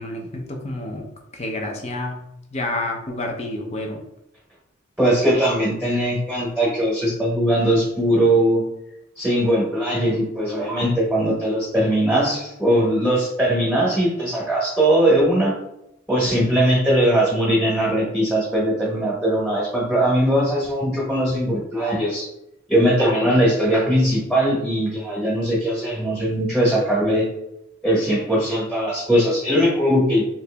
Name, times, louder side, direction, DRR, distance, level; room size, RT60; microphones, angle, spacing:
voice 1, 0.0-2.2 2.5-4.0, left 2 dB, 30° left, 2 dB, 0.6 m, -29 dB
voice 2, 5.0-8.7 9.2-15.6 16.1-22.3 22.7-27.3 27.8-30.2, right 1 dB, ahead, -6 dB, 1.1 m, -20 dB
3.1 x 2.9 x 3.3 m, 0.82 s
head